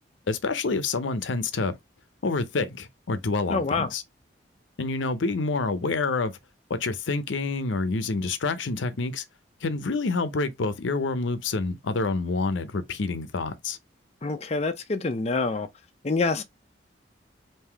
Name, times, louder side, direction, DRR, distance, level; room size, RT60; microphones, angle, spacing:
voice 1, 0.3-1.8 2.2-4.0 4.8-6.4 6.7-9.2 9.6-13.8, left 3 dB, 80° left, 0.6 m, -27 dB
voice 2, 3.5-3.9 14.2-15.7 16.0-16.4, left 3 dB, 35° left, 0.5 m, -26 dB
3.7 x 2.7 x 4.5 m
head